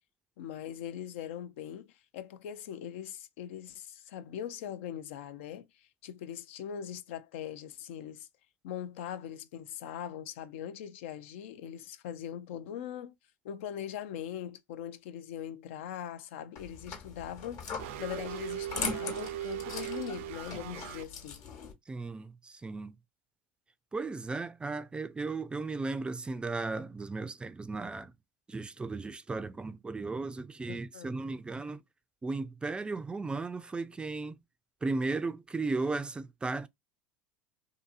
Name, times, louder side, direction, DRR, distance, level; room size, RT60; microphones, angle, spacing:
voice 1, 0.4-8.3 8.6-13.2 13.4-21.4 30.7-31.2, left 10 dB, 80° left, 0.4 m, -41 dB
sound 1, 16.6-21.7, left 5 dB, 55° left, 1.1 m, -40 dB
sound 2, 17.8-21.0, right 12 dB, 80° right, 0.4 m, -39 dB
voice 2, 21.9-22.9 23.9-28.1 28.5-31.8 32.2-34.4 34.8-36.7, right 3 dB, 15° right, 0.3 m, -35 dB
2.7 x 2.6 x 2.4 m
supercardioid pair, 100°, 7 cm